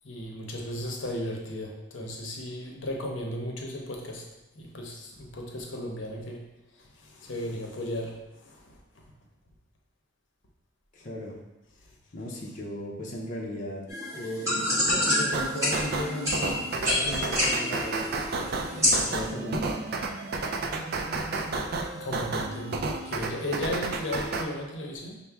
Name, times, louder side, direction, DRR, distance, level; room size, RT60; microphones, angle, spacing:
voice 1, 0.0-4.2 4.5-6.5 6.7-8.8 21.9-25.2, left 1 dB, 85° left, 0 dB, 0.7 m, -35 dB
voice 2, 10.9-11.4 12.1-13.8 14.1-18.3 18.7-19.7, equal, 45° left, -3 dB, 0.6 m, -36 dB
sound 1, 13.9-19.2, left 1 dB, 15° right, 1.1 m, -27 dB
sound 2, 15.3-24.4, right 3 dB, 55° right, 0.4 m, -32 dB
5.7 x 2.1 x 3.4 m, 1.0 s
head